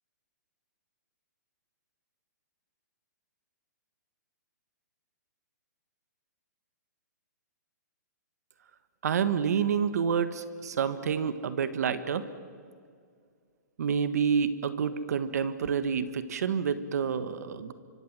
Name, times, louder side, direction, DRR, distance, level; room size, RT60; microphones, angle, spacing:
voice 1, 9.0-12.3 13.8-17.7, right 7 dB, 60° right, 13 dB, 1.5 m, -28 dB
26.0 x 25.0 x 7.5 m, 2.1 s
hypercardioid pair, 170°, 10 cm